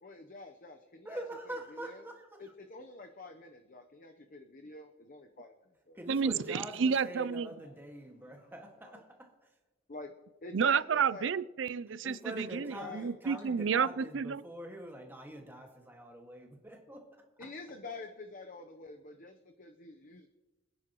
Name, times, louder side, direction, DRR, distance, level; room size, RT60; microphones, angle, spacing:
voice 1, 0.0-1.2 1.7-2.0 2.4-5.5 5.9-6.0 8.9-9.0 9.9-10.1 10.4-11.3 12.6-13.1 17.4-20.3, left 3 dB, 45° left, 5 dB, 0.8 m, -47 dB
voice 2, 1.0-2.5 5.9-9.6 12.0-17.3, right 1 dB, 10° right, 2 dB, 1.9 m, -45 dB
voice 3, 6.1-7.5 10.5-14.4, right 6 dB, 70° right, 18 dB, 0.4 m, -30 dB
27.0 x 10.0 x 3.1 m, 1.1 s
head